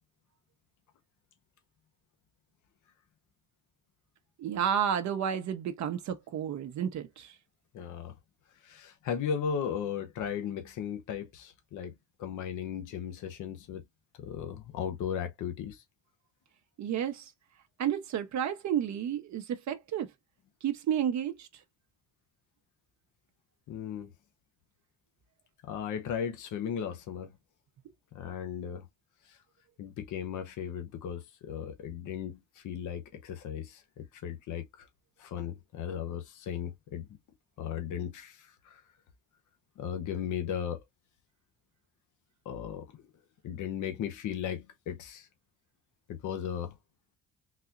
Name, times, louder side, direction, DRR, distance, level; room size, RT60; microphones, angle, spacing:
voice 1, 4.4-7.3 16.8-17.2 17.8-20.1 20.6-21.5, right 9 dB, 65° right, 0.7 m, -31 dB
voice 2, 7.7-8.2 8.6-13.8 14.2-15.8 23.7-24.1 25.6-27.3 28.1-28.9 29.3-29.4 29.8-34.9 35.2-37.1 37.6-38.8 39.8-40.8 42.4-43.0 43.4-45.3 46.1-46.7, left 8 dB, 80° left, 0.9 m, -36 dB
4.0 x 2.7 x 2.4 m
cardioid pair, 90°, 30 cm